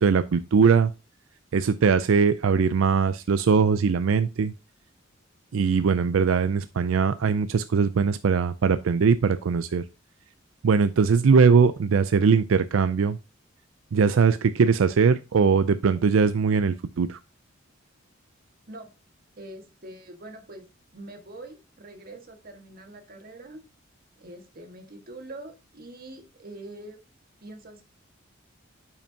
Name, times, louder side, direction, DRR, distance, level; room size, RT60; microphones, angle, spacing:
voice 1, 0.0-0.9 1.5-4.5 5.5-9.8 10.6-13.2 13.9-17.2, right 5 dB, 90° right, 12 dB, 0.4 m, -21 dB
voice 2, 19.4-23.6 24.2-27.0 27.4-27.8, right 1 dB, 50° right, 5 dB, 1.6 m, -44 dB
8.7 x 5.8 x 2.8 m, 0.28 s
head